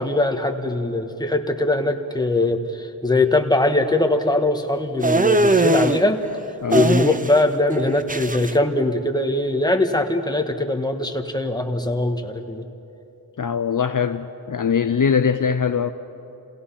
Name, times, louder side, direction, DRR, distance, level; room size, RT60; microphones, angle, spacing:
voice 1, 0.0-6.2 6.7-12.6, left 2 dB, 10° left, 5 dB, 1.5 m, -21 dB
sound 1, 5.0-6.0 6.7-7.5 7.7-8.5, right 2 dB, 20° right, 0.8 m, -20 dB
voice 2, 6.6-6.9 13.4-15.9, left 6 dB, 55° left, 8 dB, 0.7 m, -21 dB
27.5 x 17.0 x 5.8 m, 2.9 s
wide cardioid pair, 50°, 38 cm